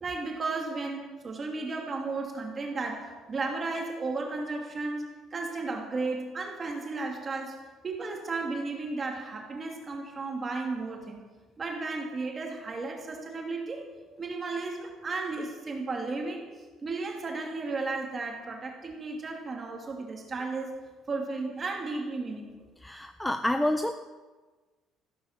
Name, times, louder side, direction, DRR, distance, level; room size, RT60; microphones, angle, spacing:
voice 1, 0.0-11.2 11.6-13.9 14.2-16.4 16.8-20.8 21.1-22.7, right 3 dB, 25° right, 1 dB, 2.7 m, -34 dB
voice 2, 22.8-23.9, left 1 dB, 5° left, 8 dB, 0.5 m, -28 dB
14.5 x 13.0 x 6.8 m, 1.3 s
cardioid pair, 175°, 0 cm